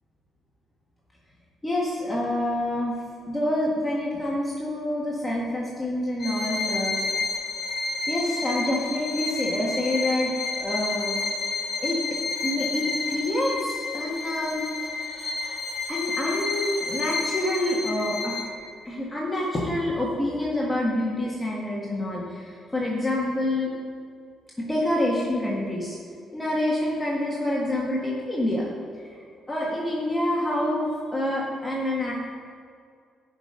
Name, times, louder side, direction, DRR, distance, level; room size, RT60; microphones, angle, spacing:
voice 1, 1.6-2.9 3.2-7.0 8.1-10.3 10.6-11.2 11.8-12.0 12.4-14.6 15.9-18.3 18.8-23.7 24.6-26.0 26.3-28.7 29.0-32.1, left 1 dB, 15° left, -5 dB, 1.6 m, -27 dB
Bowed string instrument, 6.2-18.7, left 3 dB, 55° left, 1.7 m, -30 dB
12.5 x 5.2 x 5.3 m, 2.3 s
cardioid pair, 90°, 0 cm